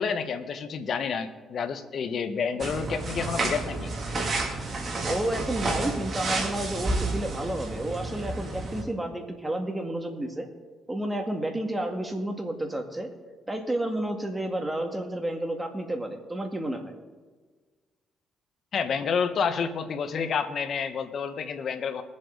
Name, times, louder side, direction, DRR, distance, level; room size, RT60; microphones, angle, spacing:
voice 1, 0.0-3.9 18.7-22.0, left 6 dB, 60° left, 9 dB, 1.1 m, -29 dB
sound 1, 2.6-8.8, right 2 dB, 40° right, 2.6 m, -30 dB
voice 2, 5.1-10.5 10.9-13.1 13.5-16.9, right 1 dB, 15° right, 4 dB, 1.9 m, -31 dB
21.0 x 7.6 x 3.9 m, 1.4 s
cardioid pair, 90°, 0 cm